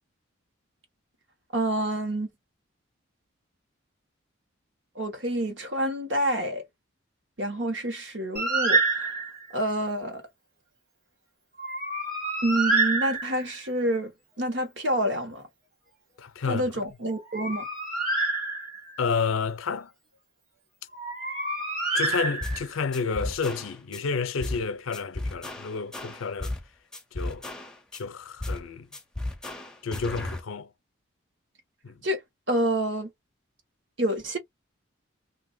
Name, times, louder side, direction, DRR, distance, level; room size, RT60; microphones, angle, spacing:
voice 1, 1.5-2.3 4.9-6.6 7.4-9.1 9.5-10.2 12.4-15.4 16.4-17.6 32.0-32.2 32.5-33.1 34.0-34.4, right 1 dB, 65° right, 1.2 m, -28 dB
Bird, 8.4-9.5 11.6-13.7 17.1-19.0 20.9-22.8, right 3 dB, 45° right, 1.5 m, -27 dB
voice 2, 16.2-16.7 19.0-19.9 21.9-26.5 27.1-27.4 27.9-28.9 29.8-30.7 31.8-32.0, left 5 dB, 90° left, 0.5 m, -30 dB
sound 1, 22.4-22.7 22.9-24.0 24.4-24.7 24.9-26.7 26.9-28.0 28.4-28.7 28.9-30.4, left 1 dB, 5° left, 0.5 m, -34 dB
2.9 x 2.6 x 2.6 m
head